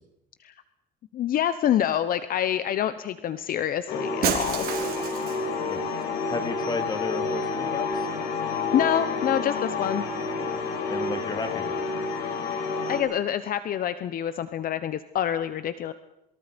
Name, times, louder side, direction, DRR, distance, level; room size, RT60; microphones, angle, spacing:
voice 1, 1.1-4.7 8.7-10.1 12.9-15.9, left 10 dB, 60° left, 12 dB, 1.0 m, -26 dB
sound 1, 3.9-13.0, left 4 dB, 85° left, 5.2 m, -29 dB
Shatter, 4.2-5.6, right 8 dB, 65° right, 4.2 m, -29 dB
voice 2, 5.6-8.0 10.9-11.9, left 3 dB, 25° left, 7 dB, 3.0 m, -33 dB
27.5 x 23.0 x 5.3 m, 0.87 s
cardioid pair, 110°, 17 cm